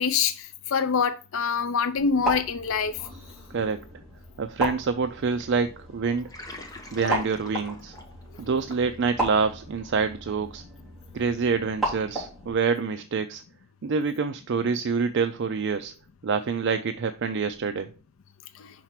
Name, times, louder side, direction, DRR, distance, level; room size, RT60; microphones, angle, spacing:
voice 1, 0.0-2.9, left 6 dB, 65° left, 0.5 m, -25 dB
sound 1, 2.0-12.5, right 1 dB, ahead, 3.7 m, -35 dB
voice 2, 4.4-6.3 6.9-7.9 8.4-10.6 11.1-13.4 13.8-15.9 16.2-17.9, right 5 dB, 55° right, 0.4 m, -26 dB
Water, 6.1-9.3, left 3 dB, 15° left, 1.0 m, -40 dB
5.7 x 4.5 x 5.8 m
head